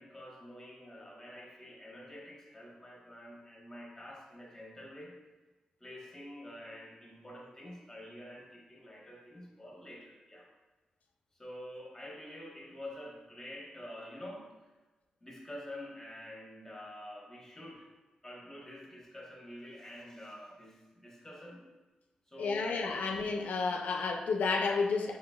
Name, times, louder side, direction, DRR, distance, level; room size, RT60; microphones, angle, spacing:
voice 1, 0.0-5.1 5.8-10.5 11.4-14.7 15.2-17.9 18.2-21.6 22.3-23.0, left 1 dB, 15° left, -2 dB, 1.0 m, -48 dB
voice 2, 22.4-25.2, left 4 dB, 80° left, 3 dB, 0.4 m, -31 dB
4.2 x 3.7 x 2.3 m, 1.2 s
cardioid pair, 85°, 3 cm